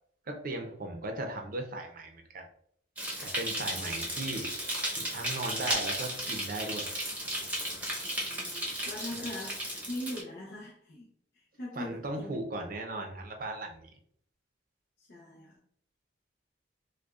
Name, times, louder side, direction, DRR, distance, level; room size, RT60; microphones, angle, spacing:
voice 1, 0.3-2.5 3.2-4.5 5.0-6.9 11.7-13.9, right 2 dB, 50° right, 4 dB, 0.6 m, -37 dB
sound 1, 3.0-10.2, right 1 dB, 10° right, 0.8 m, -34 dB
voice 2, 8.0-11.1 11.3-12.4 15.0-15.5, left 1 dB, 60° left, -4 dB, 0.7 m, -41 dB
4.9 x 2.2 x 2.4 m, 0.64 s
head